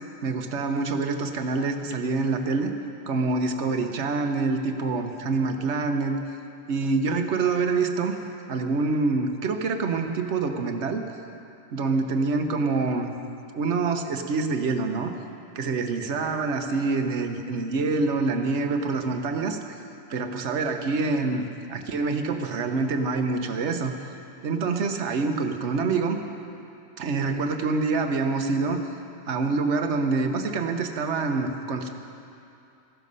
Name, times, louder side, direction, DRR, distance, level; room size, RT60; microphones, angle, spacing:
voice 1, 0.2-2.7 3.1-6.2 6.7-8.2 8.5-11.0 11.7-13.1 13.5-15.1 15.5-19.6 20.1-23.9 24.4-26.2 27.0-28.8 29.3-31.9, right 4 dB, 75° right, 6 dB, 1.2 m, -26 dB
14.5 x 12.5 x 5.4 m, 2.7 s
omnidirectional pair, 1.2 m